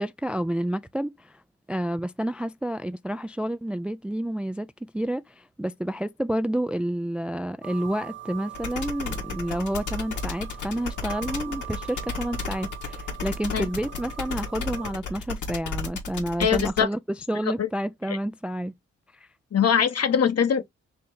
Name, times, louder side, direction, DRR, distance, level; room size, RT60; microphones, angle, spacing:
voice 1, 0.0-1.4 1.7-18.7, right 1 dB, 5° right, 0.4 m, -29 dB
sound 1, 7.6-14.9, right 11 dB, 35° right, 1.0 m, -42 dB
sound 2, 8.5-16.8, left 5 dB, 65° left, 1.8 m, -32 dB
voice 2, 16.4-16.9 17.6-17.7 19.5-20.7, left 7 dB, 50° left, 1.1 m, -22 dB
4.2 x 3.2 x 3.7 m
hypercardioid pair, 40°, 33 cm